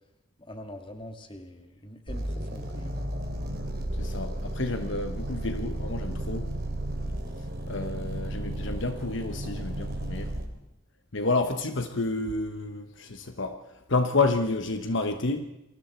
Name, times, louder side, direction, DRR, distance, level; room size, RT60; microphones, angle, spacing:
voice 1, 0.4-3.1, left 1 dB, 25° left, 2.2 m, -44 dB
sound 1, 2.1-10.5, right 1 dB, 50° right, 3.0 m, -33 dB
voice 2, 4.0-6.5 7.7-10.3 11.1-13.6 13.9-15.4, left 3 dB, 60° left, 1.2 m, -29 dB
28.5 x 23.0 x 4.5 m
head